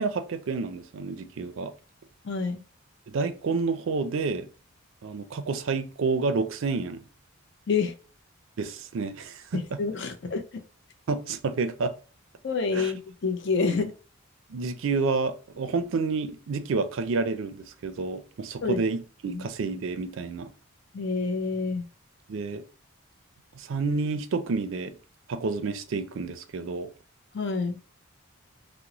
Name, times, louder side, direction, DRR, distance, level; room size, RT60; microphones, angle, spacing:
voice 1, 0.0-1.7 3.1-4.5 5.0-7.0 8.6-9.8 11.1-11.9 12.7-12.9 14.5-20.5 22.3-22.6 23.6-25.0 25.3-26.9, right 4 dB, 65° right, 0.4 m, -29 dB
voice 2, 2.2-2.6 7.7-7.9 9.5-10.4 12.4-13.9 18.6-18.8 19.3-19.4 20.9-21.8 27.3-27.8, left 4 dB, 55° left, 0.5 m, -27 dB
2.9 x 2.0 x 3.7 m
head